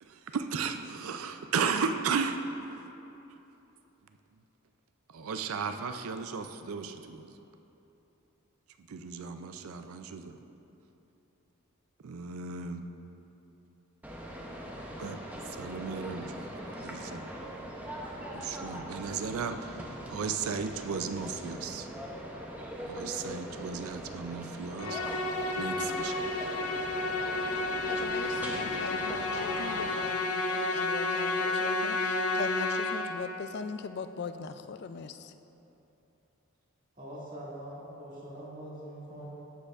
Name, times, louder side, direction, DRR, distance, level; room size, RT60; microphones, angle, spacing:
voice 1, 0.0-2.4 5.1-7.4 8.9-10.4 12.0-12.8 15.0-15.2 15.5-16.3 16.8-17.3 18.3-21.9 22.9-25.0 25.6-26.1, right 5 dB, 75° right, 8 dB, 0.4 m, -35 dB
sound 1, 14.0-30.0, equal, 5° right, 0.6 m, -41 dB
Musical instrument, 24.8-33.3, left 2 dB, 85° left, 0.7 m, -31 dB
voice 2, 27.9-35.3, left 5 dB, 50° left, 10 dB, 0.3 m, -40 dB
voice 3, 37.0-39.3, right 1 dB, 35° right, -7 dB, 2.0 m, -43 dB
13.0 x 7.7 x 2.4 m, 3.0 s
head